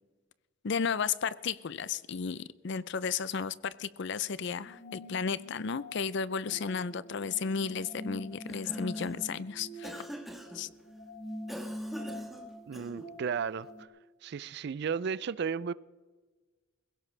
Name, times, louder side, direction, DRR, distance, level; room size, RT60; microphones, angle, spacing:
voice 1, 0.6-10.0 10.5-10.7, left 6 dB, 60° left, 0.5 m, -33 dB
sound 1, 4.6-13.9, equal, 35° left, 2.0 m, -44 dB
Cough, 8.3-9.3 9.8-10.7 11.5-13.2, equal, ahead, 1.3 m, -45 dB
voice 2, 12.7-13.9 14.2-15.7, right 6 dB, 55° right, 0.4 m, -34 dB
21.5 x 16.5 x 3.3 m
head